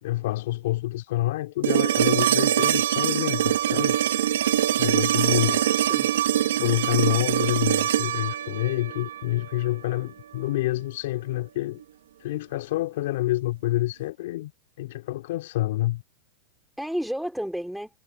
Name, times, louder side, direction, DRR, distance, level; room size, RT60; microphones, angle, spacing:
voice 1, 0.0-4.0 4.8-5.6 6.6-11.8 12.2-14.5 14.8-16.0, left 16 dB, 70° left, 4.3 m, -27 dB
sound 1, 1.6-9.7 11.8-11.9, right 11 dB, 85° right, 2.1 m, -23 dB
voice 2, 5.1-6.1 16.8-17.9, equal, ahead, 4.6 m, -32 dB
hypercardioid pair, 125°, 0 cm